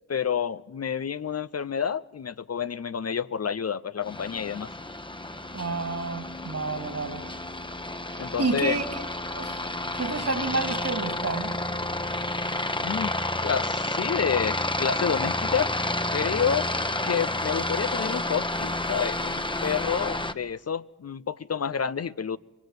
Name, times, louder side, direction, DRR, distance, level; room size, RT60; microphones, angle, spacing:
voice 1, 0.1-4.7 8.2-8.8 12.8-13.1 13.4-15.7 16.1-16.7 17.0-22.4, left 7 dB, 50° left, 0.7 m, -29 dB
Aircraft, 4.0-20.3, left 1 dB, 15° left, 1.2 m, -30 dB
voice 2, 5.5-7.3 8.1-9.0 9.3-9.6 9.9-11.6, right 3 dB, 55° right, 2.9 m, -30 dB
23.0 x 18.0 x 8.2 m
cardioid pair, 40°, 31 cm